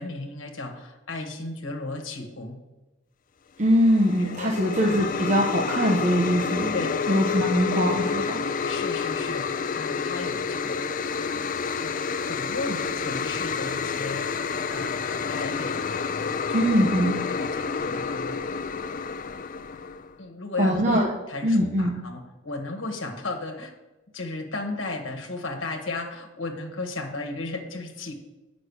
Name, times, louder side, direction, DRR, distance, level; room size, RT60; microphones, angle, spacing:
voice 1, 0.0-2.6 4.2-4.6 6.7-7.1 8.6-15.9 16.5-18.4 20.2-23.7 24.1-28.1, left 2 dB, 65° left, 3 dB, 1.4 m, -35 dB
voice 2, 3.6-6.8 7.1-8.4 16.5-17.2 20.6-21.1 21.4-21.9, equal, 35° right, -1 dB, 1.0 m, -22 dB
sound 1, 3.7-20.1, left 5 dB, 40° left, 0.4 m, -29 dB
8.5 x 6.1 x 6.3 m, 1.1 s
head